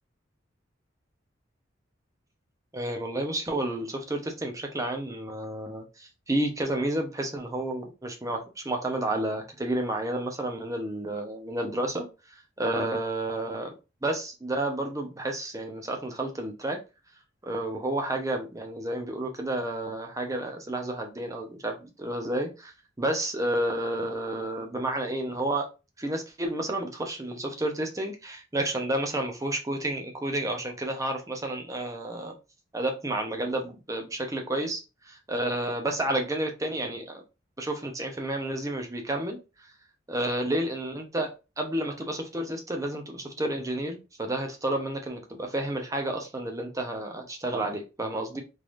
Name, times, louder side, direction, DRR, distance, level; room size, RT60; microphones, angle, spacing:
voice 1, 2.7-12.1 12.6-13.7 14.0-16.8 17.4-22.7 23.0-25.7 26.0-32.3 32.7-37.2 37.6-39.4 40.1-41.3 41.6-48.4, right 1 dB, 15° right, 3 dB, 0.8 m, -31 dB
3.7 x 3.2 x 2.5 m, 0.28 s
head